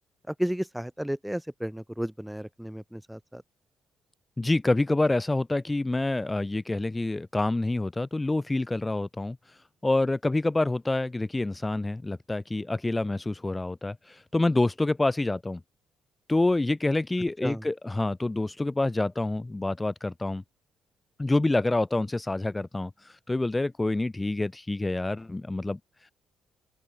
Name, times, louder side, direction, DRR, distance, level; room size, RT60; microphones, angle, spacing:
voice 1, 0.3-3.4 17.4-17.7, equal, 5° right, 7.6 m, -33 dB
voice 2, 4.4-15.6 16.3-20.4 21.2-26.1, left 2 dB, 15° left, 4.3 m, -27 dB
open air
cardioid pair, 90°, 0 cm